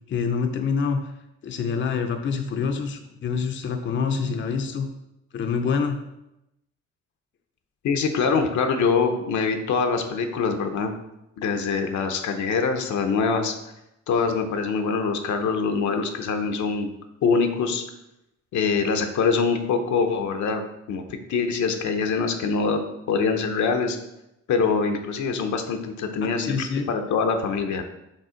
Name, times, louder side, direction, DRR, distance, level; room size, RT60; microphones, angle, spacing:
voice 1, 0.1-1.1 1.4-4.9 5.3-6.0 26.2-26.8, left 5 dB, 40° left, 6 dB, 0.6 m, -26 dB
voice 2, 7.8-10.9 11.4-13.5 14.1-16.9 17.2-17.8 18.5-20.6 20.9-24.0 24.5-26.5 26.9-27.8, left 5 dB, 70° left, 6 dB, 0.8 m, -24 dB
5.4 x 3.5 x 4.9 m, 0.90 s
cardioid pair, 90°, 30 cm